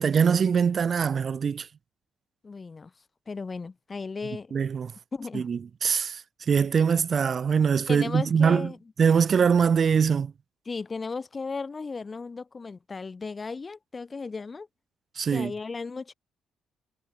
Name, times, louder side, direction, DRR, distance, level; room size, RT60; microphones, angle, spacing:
voice 1, 0.0-1.7 4.5-4.9 5.3-6.2 6.5-8.7 9.0-10.3 15.2-15.5, right 6 dB, 45° right, 0.6 m, -23 dB
voice 2, 2.4-2.9 3.3-4.6 5.1-5.5 7.9-8.8 10.6-14.7 15.3-16.1, left 4 dB, 30° left, 0.8 m, -35 dB
cardioid pair, 90°, 0 cm